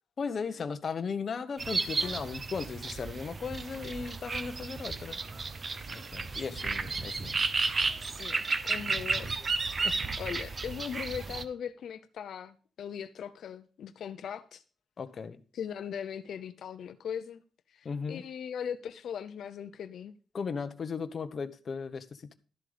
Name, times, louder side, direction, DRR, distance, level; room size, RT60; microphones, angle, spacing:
voice 1, 0.2-5.2 6.1-7.3 9.8-10.0 15.0-15.4 17.8-18.2 20.3-22.0, left 5 dB, 40° left, 1.0 m, -36 dB
sound 1, 1.6-11.4, right 4 dB, 30° right, 0.9 m, -33 dB
voice 2, 8.2-9.3 10.2-14.6 15.5-17.4 17.7-20.1, left 8 dB, 70° left, 0.7 m, -39 dB
12.5 x 7.6 x 5.1 m
wide cardioid pair, 150°, 0 cm